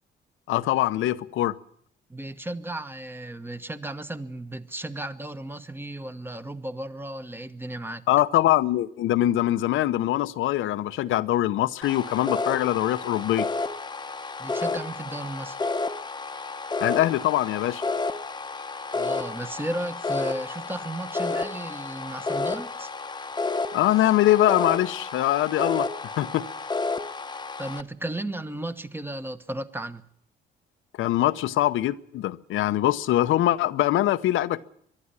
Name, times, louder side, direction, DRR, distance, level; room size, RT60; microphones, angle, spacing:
voice 1, 0.5-1.6 8.1-13.5 16.8-17.8 23.7-26.5 31.0-34.6, left 14 dB, 85° left, 0.8 m, -23 dB
voice 2, 2.1-8.0 14.4-15.6 18.9-22.9 27.6-30.0, right 1 dB, 10° right, 1.2 m, -34 dB
sound 1, 11.8-27.8, left 3 dB, 20° left, 0.9 m, -31 dB
23.5 x 11.5 x 9.8 m
cardioid pair, 90°, 20 cm